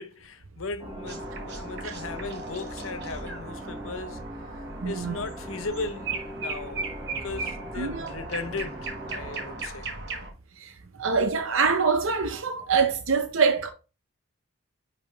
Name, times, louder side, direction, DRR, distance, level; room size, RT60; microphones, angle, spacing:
voice 1, 0.0-4.2 4.5-7.0 7.2-9.9, left 3 dB, 80° left, 0.8 m, -37 dB
sound 1, 0.8-9.7, right 1 dB, 20° right, 0.9 m, -41 dB
sound 2, 1.0-10.3, right 3 dB, 50° right, 1.3 m, -37 dB
voice 2, 4.8-5.2 7.8-8.1 10.6-10.7 11.0-13.7, right 5 dB, 70° right, 0.7 m, -24 dB
10.0 x 3.5 x 3.4 m
head